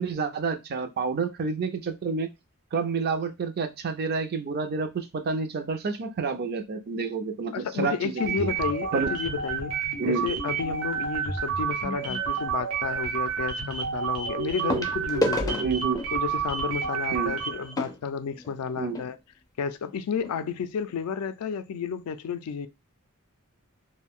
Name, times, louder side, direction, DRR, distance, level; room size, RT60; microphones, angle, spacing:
voice 1, 0.0-2.3 2.7-8.5 8.9-9.1 10.0-10.2 15.6-16.0 17.1-17.3 18.8-19.0, right 4 dB, 45° right, 0.4 m, -29 dB
voice 2, 7.5-9.7 10.1-15.6 16.1-19.2 19.6-22.7, left 6 dB, 80° left, 0.3 m, -31 dB
sound 1, 8.2-17.7, right 6 dB, 90° right, 0.9 m, -30 dB
sound 2, 11.1-11.4 13.1-13.2 14.7-19.1 19.9-20.0 20.2-20.4 20.9-21.0, left 1 dB, 15° left, 0.4 m, -33 dB
2.5 x 2.1 x 3.5 m
head